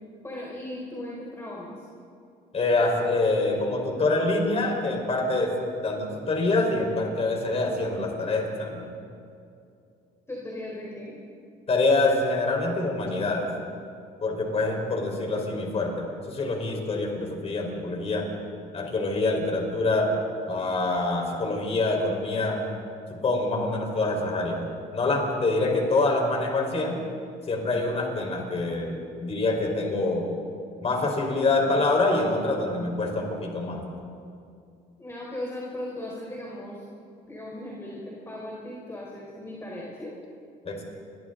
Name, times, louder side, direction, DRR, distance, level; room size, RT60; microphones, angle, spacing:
voice 1, 0.2-1.8 10.3-11.1 35.0-36.8 37.2-40.1, left 1 dB, 15° left, -4 dB, 4.6 m, -37 dB
voice 2, 2.5-5.5 5.8-8.9 11.7-13.5 14.2-18.2 18.7-20.1 20.5-22.6 23.1-24.7 24.9-27.0 27.5-30.3 30.8-33.9 40.6-40.8, left 2 dB, 35° left, 1 dB, 5.0 m, -25 dB
29.5 x 23.5 x 4.1 m, 2.5 s
cardioid pair, 110°, 17 cm